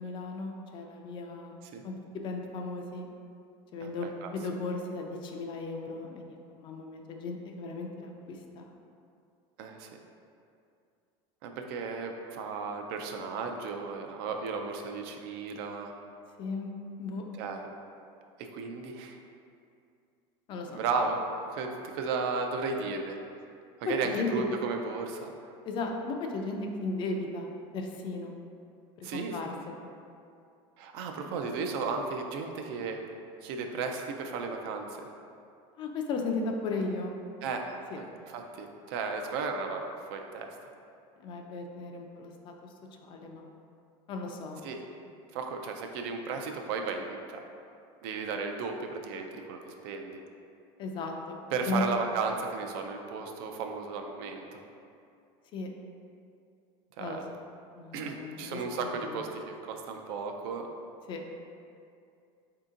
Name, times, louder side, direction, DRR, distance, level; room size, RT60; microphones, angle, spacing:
voice 1, 0.0-1.6 1.8-3.1 3.7-8.7 16.4-16.7 17.0-17.3 20.5-20.8 23.9-24.3 25.7-28.3 29.0-29.9 35.8-37.2 37.9-38.0 41.2-42.5 43.0-43.4 44.1-44.7 50.8-51.4 51.6-51.8 55.5-55.7 57.0-57.2 57.8-58.6 59.0-59.2 61.1-61.2, left 3 dB, 40° left, 2 dB, 0.4 m, -36 dB
voice 2, 3.8-4.3 9.6-9.9 11.4-15.9 17.4-17.7 18.4-19.2 20.7-21.2 21.5-23.1 23.8-25.3 29.0-29.4 30.8-33.0 33.4-35.0 37.4-37.6 38.3-40.5 44.6-44.8 45.3-47.4 48.0-50.1 51.5-54.6 57.0-57.3 57.9-60.7, right 4 dB, 75° right, 4 dB, 0.4 m, -34 dB
3.4 x 2.8 x 3.7 m, 2.5 s
cardioid pair, 140°, 13 cm